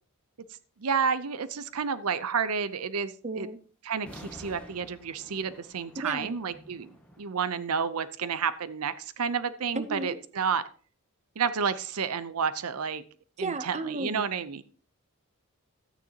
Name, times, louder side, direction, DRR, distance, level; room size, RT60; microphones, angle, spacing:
voice 1, 0.8-3.5 3.8-6.9 7.2-10.7 11.4-13.0 13.4-14.6, right 6 dB, 80° right, 15 dB, 0.6 m, -30 dB
voice 2, 3.2-3.6 6.0-6.3 9.7-10.2 13.4-14.2, right 3 dB, 30° right, 11 dB, 0.7 m, -34 dB
sound 1, 4.0-7.2, equal, 5° left, 1.5 m, -49 dB
13.5 x 9.3 x 2.8 m, 0.40 s
head